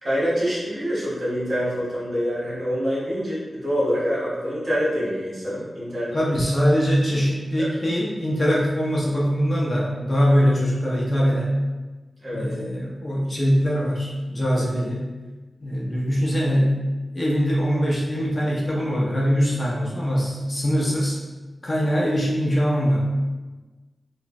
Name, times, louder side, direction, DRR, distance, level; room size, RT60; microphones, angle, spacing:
voice 1, 0.0-6.1 7.6-7.7 12.2-12.5, equal, 45° right, -7 dB, 1.2 m, -26 dB
voice 2, 6.1-11.6 12.3-15.1 15.6-16.8 17.1-21.2 21.6-23.1, equal, 35° left, -4 dB, 0.5 m, -22 dB
3.1 x 2.1 x 2.5 m, 1.2 s
wide cardioid pair, 115°, 0 cm